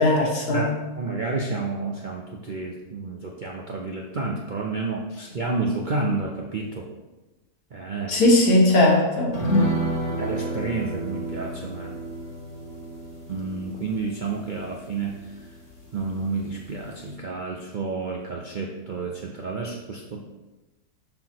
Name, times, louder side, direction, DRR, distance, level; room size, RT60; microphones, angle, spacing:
voice 1, 0.0-0.7 8.1-9.4, left 1 dB, 75° left, -1 dB, 1.7 m, -18 dB
voice 2, 0.5-6.9 7.7-8.3 10.2-11.9 13.3-15.2 15.9-20.2, right 3 dB, 65° right, -1 dB, 0.4 m, -30 dB
sound 1, 9.3-16.1 16.4-16.5 16.9-17.0, equal, 50° left, 1.6 m, -30 dB
6.8 x 5.8 x 2.9 m, 1.1 s
omnidirectional pair, 1.7 m